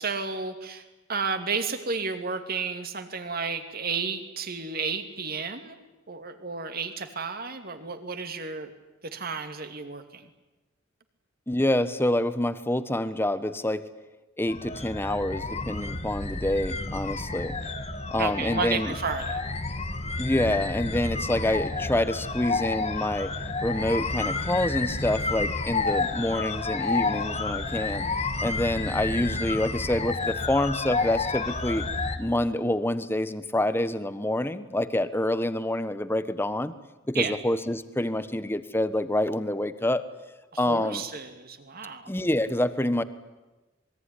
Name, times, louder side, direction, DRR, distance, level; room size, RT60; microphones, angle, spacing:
voice 1, 0.0-5.8 6.1-8.7 9.0-10.3 18.2-19.4 37.1-37.4 40.5-42.1, right 5 dB, 50° right, 8 dB, 2.6 m, -32 dB
voice 2, 11.5-13.8 14.4-17.6 18.1-18.9 20.2-23.3 23.6-28.1 28.4-31.8 32.2-36.7 37.1-40.0 40.6-41.0 42.1-43.0, left 1 dB, 10° left, 12 dB, 1.2 m, -27 dB
sound 1, 14.5-32.2, left 3 dB, 35° left, 1.9 m, -30 dB
26.5 x 22.0 x 10.0 m, 1.1 s
head